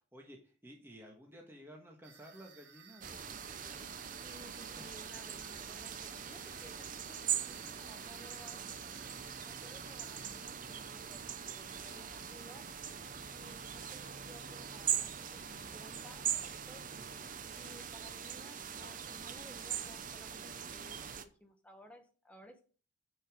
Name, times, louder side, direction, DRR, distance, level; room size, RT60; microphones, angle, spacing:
voice 1, 0.0-3.2 3.5-3.9 4.8-4.9 11.9-12.4 17.0-17.8, equal, 10° right, 0 dB, 1.4 m, -55 dB
sound 1, 2.0-10.4, right 7 dB, 60° right, 1.5 m, -59 dB
sound 2, 3.0-21.2, right 8 dB, 40° right, 0.6 m, -41 dB
voice 2, 4.2-9.0 9.4-12.6 13.3-16.8 17.5-22.6, left 1 dB, 5° left, 3 dB, 1.1 m, -57 dB
7.1 x 6.4 x 4.9 m, 0.39 s
head